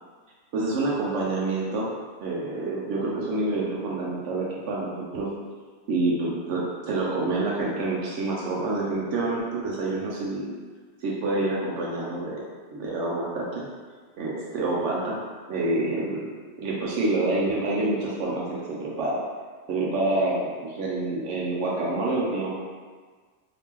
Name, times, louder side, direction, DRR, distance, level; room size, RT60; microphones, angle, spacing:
voice 1, 0.5-1.9 2.2-5.3 5.9-10.5 11.0-12.4 12.7-13.6 14.2-15.2 15.5-19.2 19.7-22.5, right 2 dB, 85° right, -4 dB, 0.9 m, -27 dB
2.9 x 2.8 x 3.5 m, 1.5 s
omnidirectional pair, 1.2 m